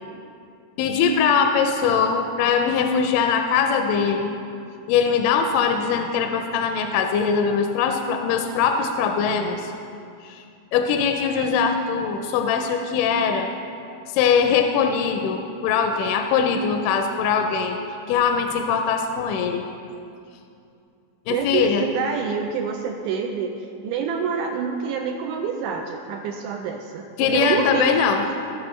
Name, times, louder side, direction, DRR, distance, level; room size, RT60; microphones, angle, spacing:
voice 1, 0.8-4.3 4.9-9.7 10.2-10.4 10.7-13.5 14.1-17.8 18.1-19.6 21.3-21.9 27.2-28.3, left 6 dB, 85° left, 5 dB, 2.1 m, -21 dB
voice 2, 21.3-28.0, right 6 dB, 80° right, 2 dB, 1.9 m, -27 dB
17.0 x 6.2 x 3.1 m, 2.5 s
omnidirectional pair, 3.8 m